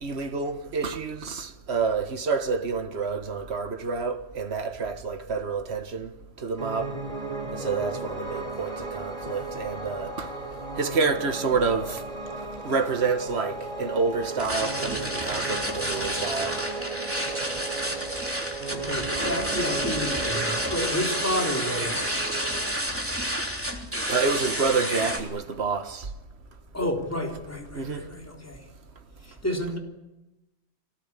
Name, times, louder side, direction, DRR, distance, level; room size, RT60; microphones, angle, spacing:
voice 1, 0.0-6.1 6.4-6.9 7.5-10.3 10.8-12.0 12.6-16.6 24.1-26.1 27.7-28.0, right 4 dB, 65° right, 1.7 m, -28 dB
Piano, 6.6-22.7, right 3 dB, 30° right, 3.7 m, -35 dB
sound 1, 14.4-25.2, equal, 10° right, 3.5 m, -30 dB
voice 2, 18.7-22.1 26.7-28.7 29.2-29.8, equal, 10° left, 3.6 m, -30 dB
25.5 x 18.5 x 9.9 m
omnidirectional pair, 1.2 m